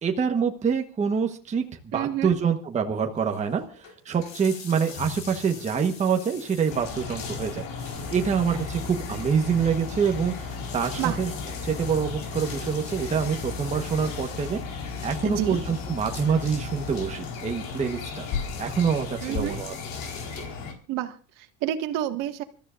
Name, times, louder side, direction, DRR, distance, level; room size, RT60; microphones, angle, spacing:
voice 1, 0.0-11.3 11.6-18.3 18.6-19.7, right 6 dB, 20° right, 3 dB, 1.2 m, -26 dB
voice 2, 1.9-2.3 11.0-11.2 15.2-15.6 19.2-19.6 20.9-22.4, right 12 dB, 60° right, 7 dB, 1.8 m, -29 dB
sound 1, 3.2-20.4, left 5 dB, 50° left, 4.6 m, -43 dB
sound 2, 6.7-20.7, left 5 dB, 65° left, 4.5 m, -36 dB
sound 3, 7.9-17.1, left 3 dB, 20° left, 2.0 m, -40 dB
27.0 x 14.0 x 2.5 m, 0.34 s
cardioid pair, 155°, 36 cm